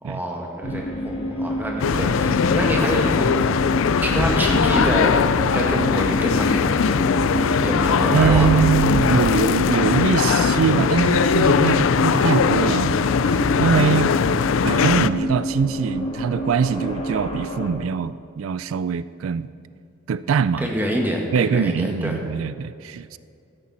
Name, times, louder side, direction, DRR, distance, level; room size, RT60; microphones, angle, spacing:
voice 1, 0.0-3.3 4.0-5.1 5.5-7.0 7.6-8.6 20.6-22.2, equal, 10° right, -1 dB, 1.9 m, -26 dB
sound 1, 0.6-17.7, equal, 30° left, 1.7 m, -28 dB
sound 2, 1.8-15.1, left 6 dB, 80° left, 0.4 m, -20 dB
voice 2, 8.1-12.9 13.2-19.5 20.1-20.7 21.3-23.2, right 6 dB, 90° right, 16 dB, 0.4 m, -23 dB
15.5 x 12.5 x 4.3 m, 2.4 s
head